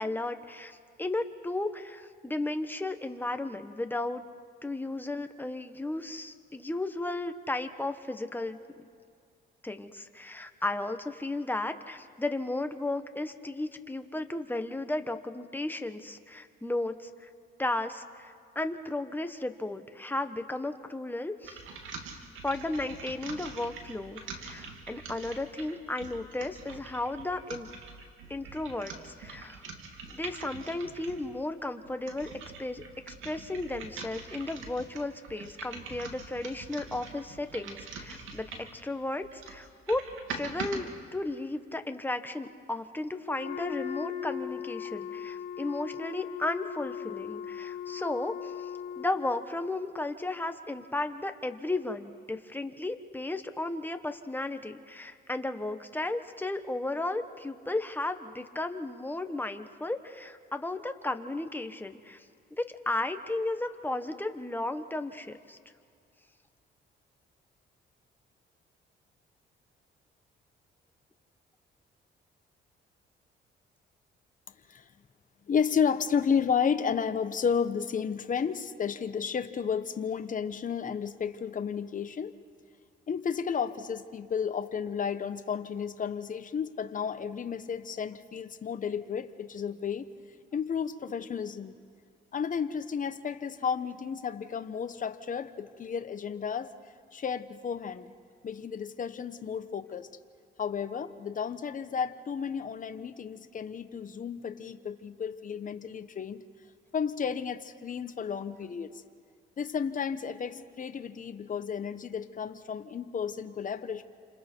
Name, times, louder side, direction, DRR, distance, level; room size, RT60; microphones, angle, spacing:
voice 1, 0.0-4.2 4.6-8.6 9.6-17.3 17.6-21.6 22.4-27.7 28.3-29.6 30.1-32.3 32.6-38.5 38.7-48.7 49.0-62.2 62.5-65.6, left 2 dB, 10° left, 7 dB, 1.4 m, -34 dB
sound 1, 21.4-31.3 31.8-38.8 39.2-40.8, right 4 dB, 80° right, 2.7 m, -44 dB
Wind instrument woodwind instrument, 43.2-49.3, left 9 dB, 80° left, 2.7 m, -38 dB
voice 2, 75.5-82.3 83.1-90.1 90.5-91.8 92.3-96.7 97.1-98.1 98.4-100.1 100.6-106.4 106.9-109.0 109.6-114.0, left 7 dB, 40° left, 9 dB, 1.1 m, -32 dB
29.0 x 26.5 x 4.6 m, 2.3 s
cardioid pair, 90°, 20 cm